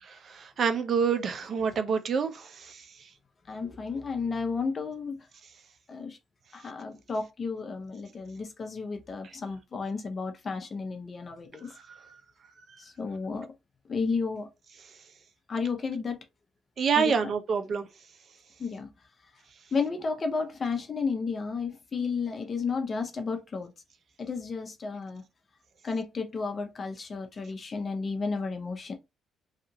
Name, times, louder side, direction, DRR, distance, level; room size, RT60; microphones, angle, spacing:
voice 1, 0.3-2.8 16.8-17.9, right 6 dB, 55° right, 0.5 m, -27 dB
voice 2, 3.5-5.2 5.9-6.2 6.5-11.7 12.8-13.5 13.9-14.5 15.5-16.2 17.0-17.1 18.6-18.9 19.7-23.7 24.2-25.2 25.8-28.9, left 4 dB, 40° left, 0.6 m, -32 dB
2.8 x 2.4 x 2.6 m
cardioid pair, 90°, 0 cm